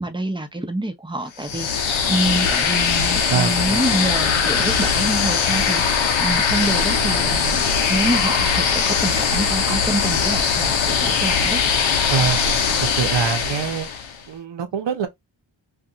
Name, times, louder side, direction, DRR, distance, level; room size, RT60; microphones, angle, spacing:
voice 1, 0.0-11.6, right 1 dB, 10° right, 0.7 m, -26 dB
sound 1, 1.4-14.2, left 6 dB, 80° left, 0.8 m, -20 dB
voice 2, 3.3-3.6 12.1-12.4 12.8-13.9 14.3-15.1, right 7 dB, 65° right, 0.9 m, -24 dB
2.5 x 2.4 x 2.8 m
cardioid pair, 65°, 46 cm